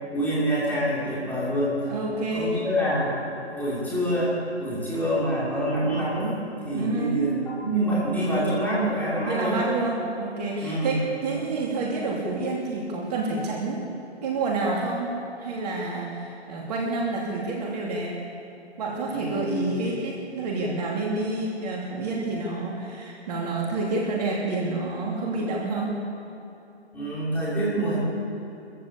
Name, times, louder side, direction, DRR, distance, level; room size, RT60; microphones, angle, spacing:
voice 1, 0.1-1.8 2.3-3.1 3.5-9.6 10.6-11.0 11.3-11.5 19.1-19.7 26.9-28.0, right 1 dB, 5° left, -9 dB, 5.8 m, -26 dB
voice 2, 1.8-2.6 6.7-7.4 9.3-13.8 14.2-18.2 18.8-26.0, right 3 dB, 35° right, -2 dB, 3.0 m, -28 dB
23.5 x 15.0 x 8.5 m, 2.8 s
figure-of-eight pair, 140°, 33 cm